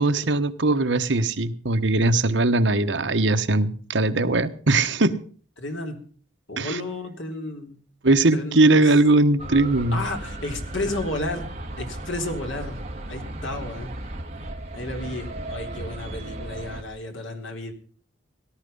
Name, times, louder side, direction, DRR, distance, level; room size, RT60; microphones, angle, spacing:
voice 1, 0.0-5.2 6.6-6.8 8.0-10.0, right 2 dB, 75° right, 9 dB, 1.2 m, -20 dB
voice 2, 5.6-6.0 6.5-7.8 8.3-8.9 9.9-11.5 11.8-12.8 13.1-13.9 14.7-17.7, left 2 dB, 80° left, 4 dB, 3.5 m, -32 dB
sound 1, 9.4-16.8, right 1 dB, 35° right, 2.4 m, -35 dB
18.0 x 12.5 x 5.5 m, 0.43 s
head